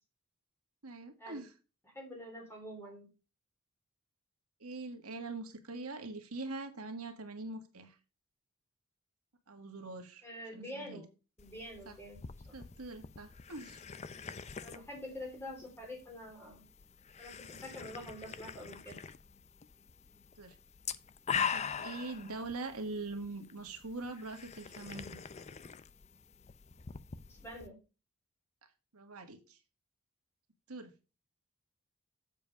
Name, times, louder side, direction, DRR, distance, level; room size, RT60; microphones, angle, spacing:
voice 1, 0.8-1.5 4.6-7.9 9.5-10.2 10.5-11.0 11.8-11.9 12.5-13.8 20.4-20.6 21.5-25.2 28.9-29.6 30.7-30.9, right 3 dB, 80° right, 5 dB, 1.7 m, -43 dB
voice 2, 1.8-3.1 10.2-11.1 11.4-12.2 12.5-12.6 14.6-16.7 17.2-19.0 27.3-27.8, equal, 10° left, 0 dB, 3.6 m, -46 dB
sound 1, 11.4-27.7, left 7 dB, 30° left, 0.5 m, -43 dB
7.4 x 7.3 x 5.3 m, 0.32 s
head